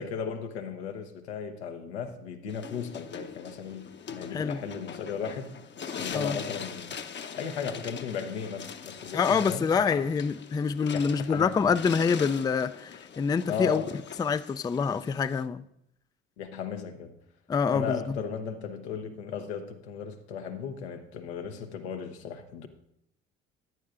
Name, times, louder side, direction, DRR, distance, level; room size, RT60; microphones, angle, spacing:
voice 1, 0.0-5.6 6.0-7.0 7.3-10.1 10.9-11.5 13.5-14.0 16.4-17.1 17.7-22.7, left 7 dB, 90° left, 0.9 m, -36 dB
sound 1, 2.5-15.5, left 7 dB, 35° left, 0.8 m, -42 dB
voice 2, 9.1-13.8 14.2-15.6 17.5-18.2, left 5 dB, 15° left, 0.3 m, -26 dB
13.5 x 10.0 x 2.5 m
hypercardioid pair, 60°, 32 cm